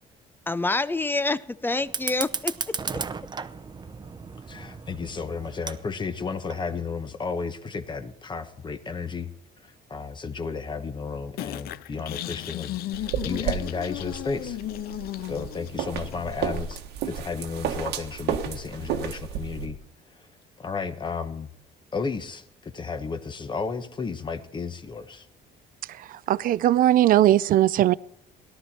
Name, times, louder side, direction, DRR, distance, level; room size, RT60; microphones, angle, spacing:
voice 1, 0.5-2.8, left 2 dB, 10° left, 16 dB, 0.5 m, -27 dB
Fire, 1.8-6.8, right 5 dB, 25° right, 0.8 m, -35 dB
voice 2, 4.5-9.3 9.6-14.6 15.3-16.8 17.0-19.8 20.6-21.5 21.9-25.3, left 5 dB, 25° left, 9 dB, 1.2 m, -33 dB
sound 1, 11.4-16.4, left 15 dB, 65° left, 0.5 m, -35 dB
sound 2, 12.9-19.7, right 9 dB, 85° right, 1.4 m, -32 dB
voice 3, 26.3-27.9, right 13 dB, 55° right, 19 dB, 0.5 m, -19 dB
18.0 x 12.0 x 4.3 m, 0.75 s
cardioid pair, 110°, 17 cm